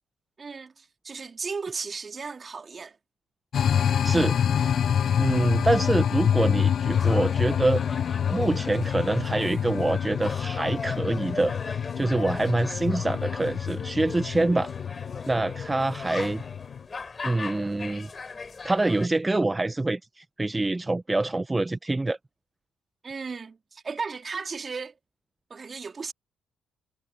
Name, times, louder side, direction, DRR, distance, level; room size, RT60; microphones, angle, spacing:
voice 1, 0.4-3.0 23.0-24.9 25.5-26.1, right 5 dB, 40° right, 3.1 m, -35 dB
sound 1, 3.5-16.8, left 8 dB, 55° left, 0.6 m, -27 dB
voice 2, 4.0-4.9 5.2-7.8 8.3-14.7 15.3-16.4 17.2-18.1 18.6-22.2, right 2 dB, 20° right, 1.5 m, -26 dB
sound 2, 6.9-19.1, left 4 dB, 35° left, 6.4 m, -39 dB
hypercardioid pair, 50°, 0 cm